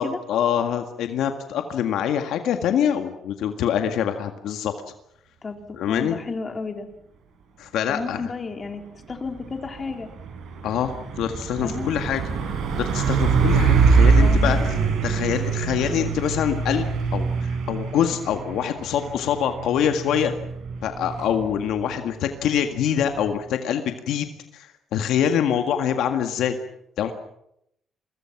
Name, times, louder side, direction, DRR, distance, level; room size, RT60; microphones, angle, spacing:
voice 1, 0.0-4.7 5.7-6.2 7.6-8.3 10.6-12.5 12.8-14.8 15.0-20.3 20.8-24.3 24.5-26.6 27.0-27.1, left 9 dB, 85° left, 6 dB, 1.8 m, -25 dB
voice 2, 5.9-6.9 7.9-8.8 9.1-10.1 11.6-11.9 14.2-14.6, left 4 dB, 35° left, 5 dB, 3.8 m, -32 dB
Truck, 9.1-23.4, right 5 dB, 75° right, 6.2 m, -24 dB
29.5 x 23.0 x 6.0 m, 0.77 s
cardioid pair, 90°, 0 cm